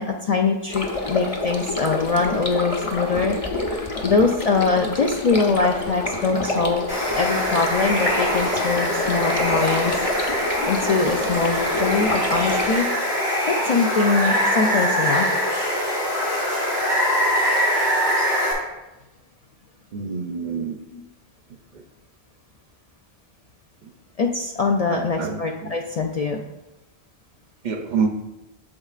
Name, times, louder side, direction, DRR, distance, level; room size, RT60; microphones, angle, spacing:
voice 1, 0.0-6.9 7.1-10.1 10.7-12.9 13.5-15.3 20.9-21.0 24.2-26.4, left 4 dB, 55° left, 2 dB, 0.4 m, -23 dB
sound 1, 0.7-12.8, left 2 dB, 35° left, 0.9 m, -28 dB
Water, 6.9-18.5, equal, 80° left, 2.2 m, -23 dB
voice 2, 19.9-20.8 23.8-23.9 24.9-25.7 27.6-28.1, right 5 dB, 55° right, 5 dB, 0.6 m, -27 dB
8.7 x 6.4 x 2.4 m, 0.99 s
omnidirectional pair, 1.1 m